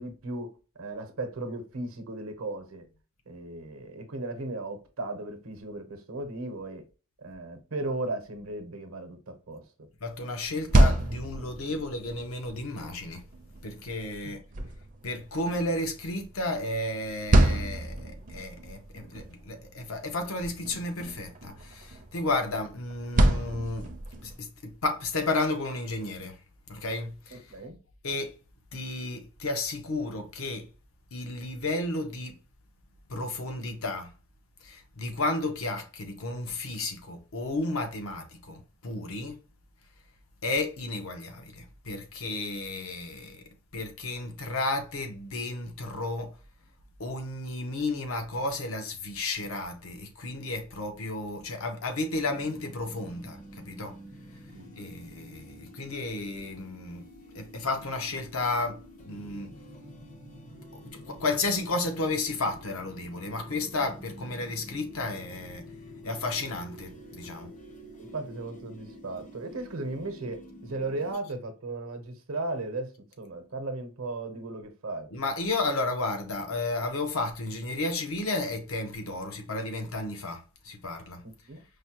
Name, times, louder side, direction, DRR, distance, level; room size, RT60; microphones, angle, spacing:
voice 1, 0.0-2.8 3.3-6.8 7.2-9.9 14.2-14.3 27.3-27.8 54.5-54.7 55.8-55.9 68.0-75.1 81.2-81.6, right 2 dB, 75° right, 0.8 m, -36 dB
voice 2, 10.0-13.2 13.6-14.4 15.0-23.9 24.2-26.4 26.7-27.4 28.0-28.3 28.7-30.7 31.1-32.3 33.1-34.1 34.6-39.4 40.4-43.4 43.7-46.3 47.0-53.9 54.8-57.0 57.3-59.5 60.8-65.7 66.0-67.5 75.1-81.2, left 2 dB, 75° left, 0.8 m, -32 dB
sound 1, 10.4-24.4, right 1 dB, 40° right, 0.5 m, -29 dB
sound 2, 52.2-71.1, equal, 40° left, 0.6 m, -48 dB
5.0 x 2.1 x 2.9 m
head